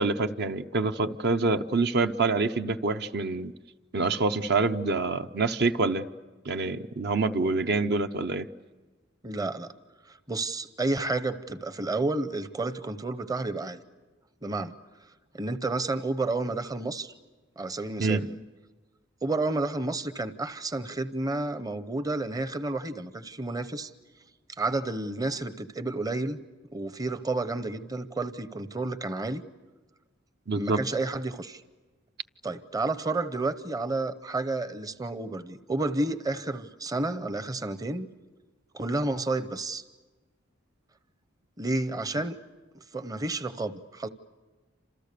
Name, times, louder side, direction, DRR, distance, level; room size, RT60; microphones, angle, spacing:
voice 1, 0.0-3.5 3.9-6.1 6.4-8.5 18.0-18.3 30.5-30.8, right 3 dB, 55° right, 8 dB, 0.8 m, -26 dB
voice 2, 9.2-9.7 10.3-13.8 14.4-14.7 15.3-17.1 17.6-18.3 19.2-23.9 24.6-26.4 26.7-29.4 30.6-31.6 32.4-38.1 38.7-39.8 41.6-42.4 42.9-44.1, right 2 dB, 20° right, 12 dB, 0.7 m, -30 dB
29.5 x 27.0 x 6.7 m, 1.3 s
head